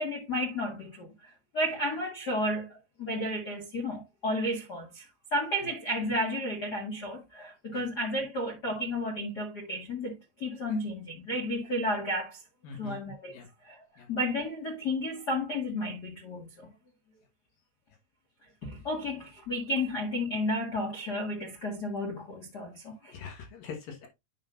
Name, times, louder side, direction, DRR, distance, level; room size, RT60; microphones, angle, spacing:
voice 1, 0.0-12.4 12.8-16.7 18.6-23.1, left 1 dB, 90° left, 0.8 m, -32 dB
voice 2, 12.6-13.0 13.3-13.5 14.0-14.1 23.0-24.1, left 6 dB, 65° left, 2.8 m, -43 dB
9.4 x 6.4 x 2.6 m
omnidirectional pair, 4.9 m